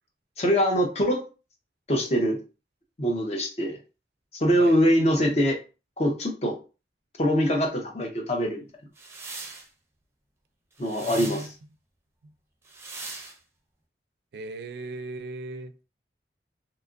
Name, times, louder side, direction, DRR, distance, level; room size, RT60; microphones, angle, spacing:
voice 1, 0.4-1.2 1.9-2.4 3.0-3.8 4.3-5.6 6.0-6.6 7.2-8.7 10.8-11.5, equal, 35° left, 0.6 m, -23 dB
sound 1, 9.0-9.7 10.8-11.5 12.7-13.4, right 3 dB, 15° right, 0.5 m, -40 dB
voice 2, 11.0-11.5 12.2-12.3 14.3-15.7, right 2 dB, 60° right, 0.3 m, -37 dB
2.8 x 2.3 x 2.5 m
head